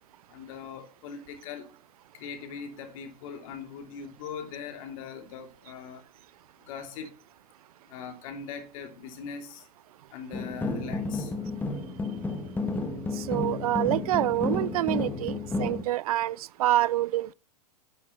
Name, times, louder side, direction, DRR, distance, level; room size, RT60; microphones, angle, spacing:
voice 1, 0.3-1.7 2.1-6.0 6.7-7.1 7.9-9.6 10.1-11.3, left 6 dB, 55° left, 2.9 m, -40 dB
sound 1, 10.3-15.8, left 3 dB, 10° left, 1.4 m, -31 dB
voice 2, 13.2-17.3, right 15 dB, 60° right, 0.4 m, -27 dB
10.5 x 8.1 x 4.4 m
hypercardioid pair, 120°, 21 cm